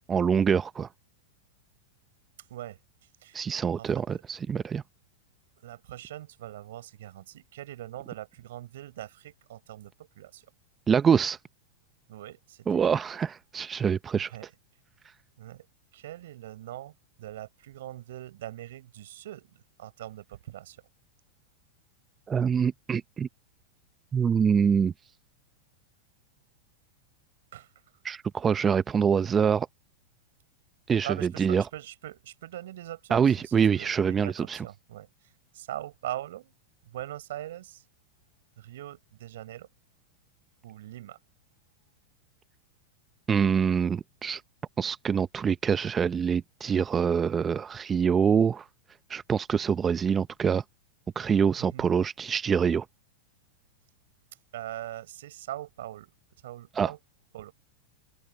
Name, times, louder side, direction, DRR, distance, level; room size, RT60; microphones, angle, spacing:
voice 1, 0.1-0.9 3.3-4.8 10.9-11.4 12.7-14.3 22.3-23.3 24.1-24.9 28.0-29.7 30.9-31.1 31.4-31.6 33.1-34.6 43.3-44.4 44.8-48.7 49.1-50.6 51.2-52.9 56.8-56.9, right 7 dB, 20° right, 0.7 m, -25 dB
voice 2, 3.8-4.2 5.6-10.5 12.1-13.0 14.1-14.5 15.4-15.7 15.9-20.8 27.5-27.7 31.0-36.5 36.8-37.8 38.6-39.7 40.6-41.2 51.6-51.9 54.5-56.1 56.4-57.0 57.3-57.5, right 13 dB, 75° right, 5.7 m, -42 dB
open air
hypercardioid pair, 110°, 0 cm